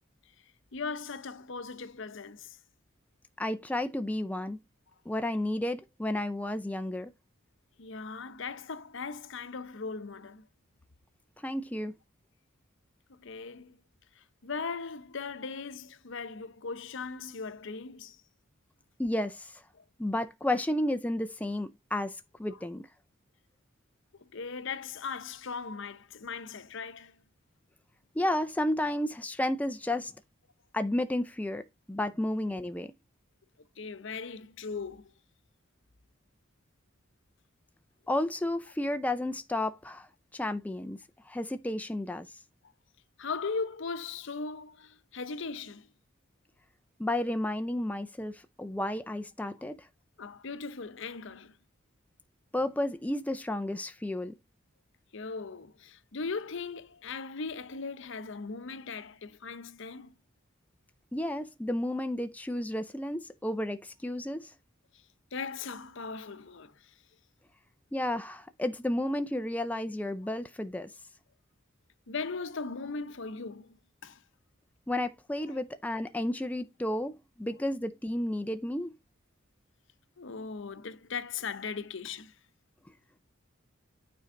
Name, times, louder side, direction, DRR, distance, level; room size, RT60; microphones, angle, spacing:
voice 1, 0.7-2.6 7.8-10.5 13.1-13.8 14.2-18.2 24.2-27.2 33.8-35.1 43.2-45.9 50.2-51.6 55.1-60.1 65.3-66.9 72.1-73.8 74.0-74.2 75.5-75.6 80.2-82.3, left 4 dB, 65° left, 0.8 m, -38 dB
voice 2, 3.4-4.6 5.1-7.1 11.4-11.9 19.0-19.6 20.0-22.9 28.2-30.1 30.7-32.9 38.1-41.0 41.3-42.3 47.0-49.9 52.5-54.4 61.1-64.5 67.9-70.9 74.9-78.9, left 1 dB, 10° left, 0.5 m, -32 dB
9.3 x 4.5 x 3.8 m
head